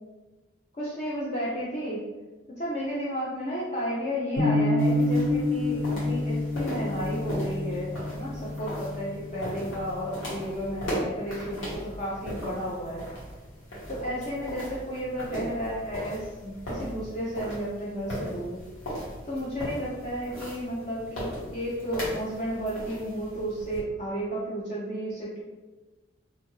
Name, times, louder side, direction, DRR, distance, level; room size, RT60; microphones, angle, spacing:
voice 1, 0.8-2.0 2.5-13.1 13.9-18.6 19.3-25.4, equal, 35° left, -8 dB, 0.5 m, -33 dB
sound 1, 4.4-10.4, left 2 dB, 55° left, 0.9 m, -28 dB
sound 2, 4.8-23.8, equal, 85° left, 1.2 m, -38 dB
2.7 x 2.4 x 3.0 m, 1.2 s
head